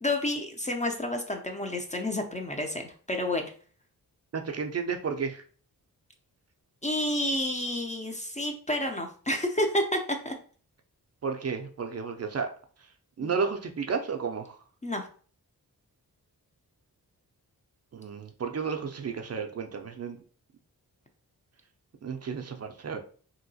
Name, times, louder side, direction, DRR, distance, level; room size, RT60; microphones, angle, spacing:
voice 1, 0.0-3.5 6.8-10.0 10.2-10.3 13.2-13.3 14.8-15.0, left 1 dB, 20° left, 3 dB, 0.4 m, -30 dB
voice 2, 4.3-5.4 11.2-12.5 13.2-14.6 17.9-20.2 22.0-23.0, right 5 dB, 40° right, 5 dB, 0.4 m, -32 dB
2.9 x 2.8 x 2.7 m, 0.43 s
cardioid pair, 75°, 38 cm